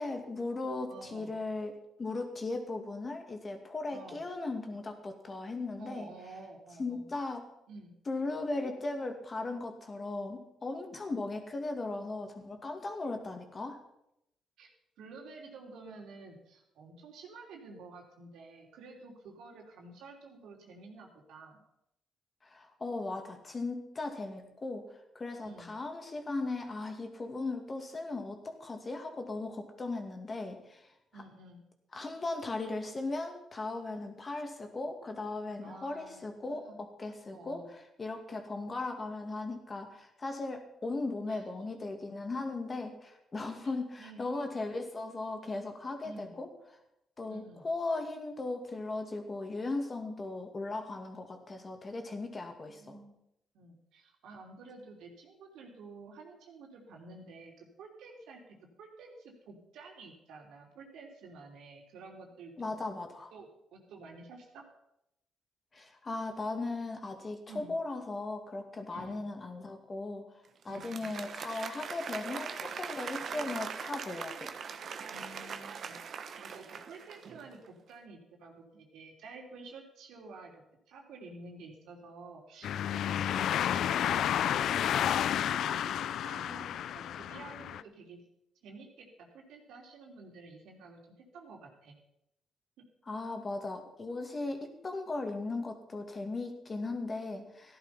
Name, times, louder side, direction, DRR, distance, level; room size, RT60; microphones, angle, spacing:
voice 1, 0.0-6.1 6.8-7.5 8.1-13.8 22.4-24.9 25.1-31.2 31.9-37.6 38.0-46.5 47.2-53.0 62.6-63.3 65.7-70.2 70.6-74.5 93.1-97.8, left 3 dB, 30° left, 5 dB, 2.4 m, -37 dB
voice 2, 0.9-1.3 3.9-4.2 5.8-7.1 7.7-7.9 14.6-14.7 15.0-21.6 25.4-25.7 31.1-31.6 35.6-36.8 37.3-37.7 41.3-41.7 43.6-44.2 46.0-46.3 47.3-47.7 52.8-53.2 53.5-62.7 63.3-64.6 67.5-67.7 68.9-69.2 70.7-71.1 75.1-85.0 85.5-88.2 88.6-91.9, right 3 dB, 85° right, 1 dB, 3.1 m, -51 dB
Applause, 70.6-77.6, right 6 dB, 55° right, 1.2 m, -41 dB
sound 1, 82.6-87.8, left 10 dB, 70° left, 0.5 m, -31 dB
14.0 x 11.0 x 5.8 m, 0.81 s
cardioid pair, 90°, 0 cm